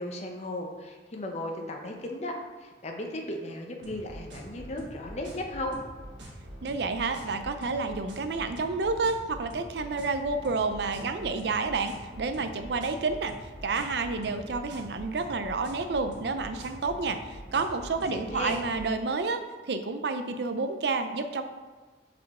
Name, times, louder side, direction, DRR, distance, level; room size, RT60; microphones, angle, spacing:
voice 1, 0.0-5.8 18.1-18.6, left 1 dB, 40° left, 2 dB, 0.7 m, -36 dB
sound 1, 3.8-18.8, right 1 dB, 90° right, 1.2 m, -45 dB
voice 2, 6.6-13.3 13.6-19.4 19.7-21.4, right 3 dB, 65° right, 8 dB, 0.5 m, -30 dB
5.3 x 4.4 x 4.2 m, 1.4 s
head